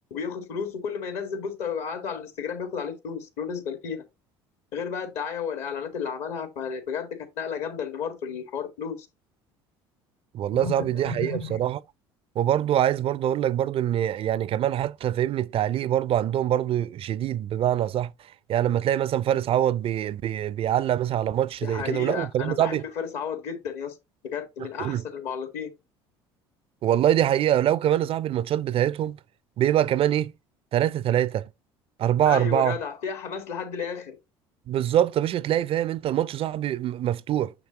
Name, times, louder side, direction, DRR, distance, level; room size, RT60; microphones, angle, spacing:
voice 1, 0.1-4.0 4.7-9.1 10.6-11.6 21.6-23.9 24.2-25.7 32.2-34.1, left 6 dB, 65° left, 1.8 m, -32 dB
voice 2, 10.3-11.8 12.4-22.8 24.6-25.0 26.8-29.2 29.6-30.3 30.7-31.5 32.0-32.8 34.7-37.5, right 11 dB, 45° right, 0.4 m, -24 dB
6.5 x 5.9 x 2.9 m
hypercardioid pair, 70°, 13 cm